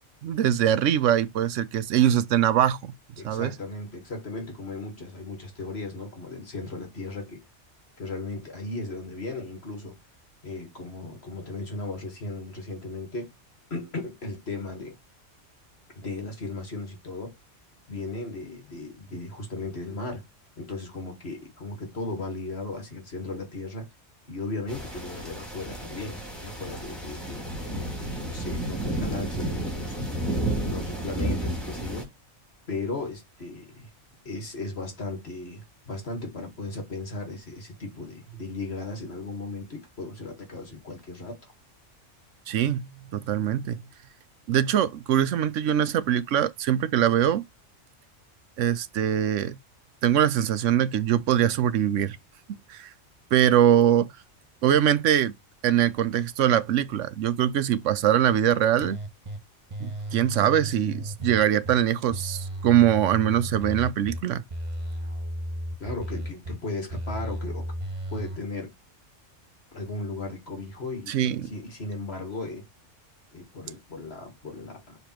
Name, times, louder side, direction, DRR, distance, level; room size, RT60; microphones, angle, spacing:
voice 1, 0.2-2.9 3.2-3.5 42.5-43.8 44.5-47.4 48.6-49.6 50.0-52.2 52.7-52.9 53.3-54.1 54.6-55.3 55.6-59.0 59.8-64.4 71.1-71.5, right 10 dB, 85° right, 1.0 m, -22 dB
voice 2, 3.2-7.4 8.0-10.0 10.4-13.3 13.7-15.0 15.9-17.4 17.9-20.2 20.6-23.9 24.3-30.0 30.6-32.1 32.7-33.9 34.3-41.4 65.8-67.7 68.1-68.7 69.7-72.7 73.3-75.0, left 2 dB, 60° left, 2.0 m, -36 dB
sound 1, 24.7-32.0, right 1 dB, ahead, 2.5 m, -32 dB
sound 2, 58.8-59.4 59.7-61.7 62.1-64.2 64.5-66.5 66.9-68.4, right 1 dB, 25° right, 1.4 m, -34 dB
6.7 x 3.3 x 4.4 m
omnidirectional pair, 1.2 m